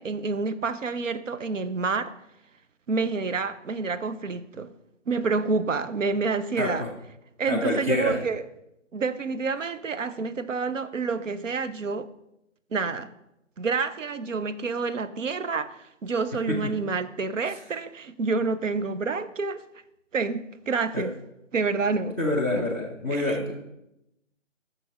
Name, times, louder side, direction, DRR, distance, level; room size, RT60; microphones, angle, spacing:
voice 1, 0.0-2.1 2.9-4.7 5.1-6.9 7.4-8.4 8.9-12.1 12.7-13.1 13.6-19.6 20.1-21.1 21.5-22.2 22.5-22.7 23.1-23.4, right 4 dB, 80° right, 0.7 m, -28 dB
voice 2, 6.6-6.9 7.5-8.2 16.5-16.6 20.9-21.0 22.2-23.6, left 2 dB, 10° right, 0.7 m, -27 dB
8.9 x 6.9 x 4.8 m
figure-of-eight pair, 160°, 38 cm